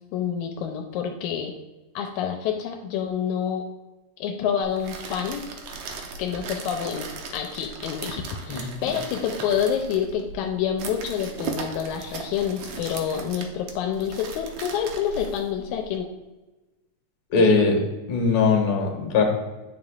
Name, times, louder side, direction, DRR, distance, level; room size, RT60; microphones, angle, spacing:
voice 1, 0.1-1.5 2.0-3.6 4.2-5.4 6.2-7.1 7.3-16.1 17.4-17.5, left 8 dB, 85° left, 3 dB, 2.0 m, -28 dB
sound 1, 4.6-16.0, right 5 dB, 75° right, 2.1 m, -38 dB
voice 2, 17.3-17.8 18.1-19.2, left 4 dB, 65° left, 1 dB, 2.3 m, -20 dB
9.4 x 4.9 x 2.4 m, 1.1 s
omnidirectional pair, 3.4 m